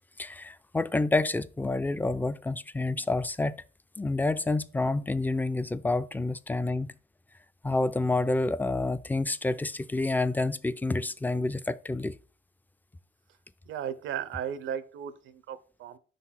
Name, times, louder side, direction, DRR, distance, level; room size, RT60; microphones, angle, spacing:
voice 1, 0.2-3.6 4.0-6.9 7.6-12.2, left 2 dB, 10° left, 0.3 m, -28 dB
voice 2, 13.7-16.0, right 9 dB, 85° right, 0.6 m, -36 dB
5.7 x 3.9 x 4.2 m
cardioid pair, 90°, 20 cm